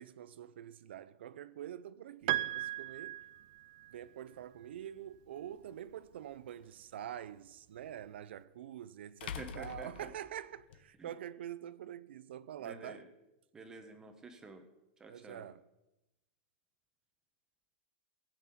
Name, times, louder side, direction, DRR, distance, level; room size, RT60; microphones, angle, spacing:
voice 1, 0.0-3.2 3.9-13.0 15.1-15.6, right 10 dB, 80° right, 0.7 m, -46 dB
Piano, 2.3-4.0, right 15 dB, 45° right, 0.4 m, -36 dB
sound 1, 5.4-5.5 8.0-8.1 9.2-10.8, left 7 dB, 65° left, 1.2 m, -45 dB
voice 2, 9.4-10.1 11.0-11.1 12.6-13.1 13.5-14.6 15.0-15.5, right 3 dB, 10° right, 1.1 m, -49 dB
16.5 x 6.0 x 8.5 m
supercardioid pair, 170°, 6 cm